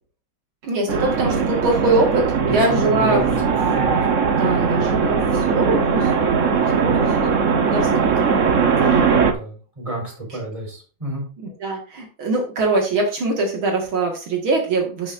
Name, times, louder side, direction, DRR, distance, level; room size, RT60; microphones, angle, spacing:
voice 1, 0.6-3.2 4.1-6.5 6.8-7.1 7.7-7.9 8.1-8.5 8.9-9.0 11.4-15.1, right 2 dB, 70° right, 1 dB, 2.6 m, -23 dB
sound 1, 0.9-9.3, right 5 dB, 45° right, 1.1 m, -19 dB
voice 2, 2.4-3.4 3.7-3.9 6.8-7.1 8.7-11.2, right 2 dB, 15° right, -2 dB, 4.6 m, -29 dB
12.0 x 7.2 x 2.6 m, 0.37 s
omnidirectional pair, 2.3 m